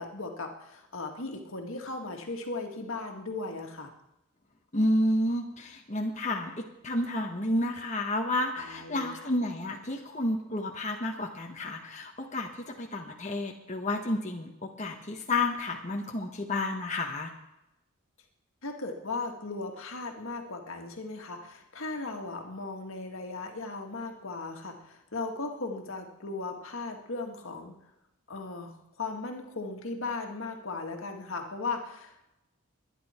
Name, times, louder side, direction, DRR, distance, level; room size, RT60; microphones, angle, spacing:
voice 1, 0.0-3.9 8.6-9.2 18.6-27.8 28.3-32.2, left 3 dB, 70° left, 3 dB, 1.9 m, -37 dB
voice 2, 4.7-17.3, left 1 dB, 35° left, 1 dB, 1.3 m, -31 dB
22.5 x 10.5 x 4.4 m, 0.88 s
head